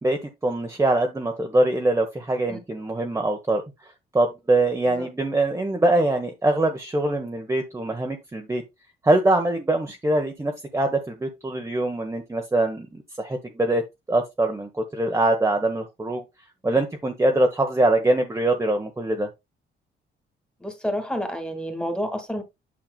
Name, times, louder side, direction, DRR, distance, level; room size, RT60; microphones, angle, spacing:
voice 1, 0.0-8.6 9.0-16.2 16.6-19.3, right 2 dB, 15° right, 1.1 m, -23 dB
voice 2, 20.6-22.4, equal, 5° left, 2.1 m, -29 dB
9.0 x 5.8 x 2.3 m
cardioid pair, 90°, 20 cm